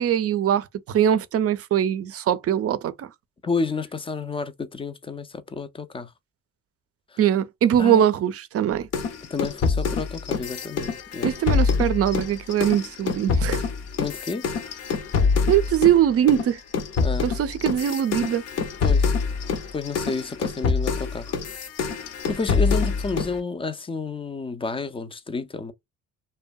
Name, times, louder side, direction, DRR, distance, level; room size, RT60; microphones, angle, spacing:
voice 1, 0.0-3.1 7.2-8.9 11.2-13.6 15.5-16.6 17.2-18.4, right 10 dB, 50° right, 0.5 m, -21 dB
voice 2, 3.4-6.1 7.1-7.2 7.8-8.0 9.3-11.3 14.0-14.5 17.0-17.3 18.8-19.1 19.4-21.3 22.3-25.7, left 4 dB, 20° left, 0.4 m, -30 dB
sound 1, 8.9-16.0 16.3-23.4, left 5 dB, 55° left, 0.6 m, -25 dB
2.6 x 2.1 x 2.2 m
cardioid pair, 90°, 30 cm